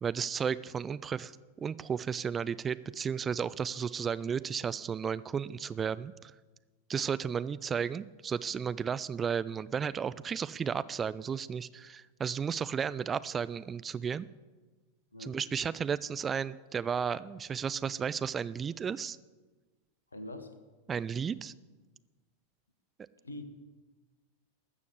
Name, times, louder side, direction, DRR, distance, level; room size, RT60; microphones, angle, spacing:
voice 1, 0.0-1.3 1.6-6.3 6.9-14.3 15.2-19.2 20.9-21.5, right 7 dB, 20° right, 17 dB, 0.4 m, -33 dB
voice 2, 20.1-20.5 23.2-23.4, left 1 dB, 75° left, 8 dB, 1.3 m, -43 dB
13.0 x 7.2 x 8.2 m, 1.3 s
figure-of-eight pair, 90°, 0 cm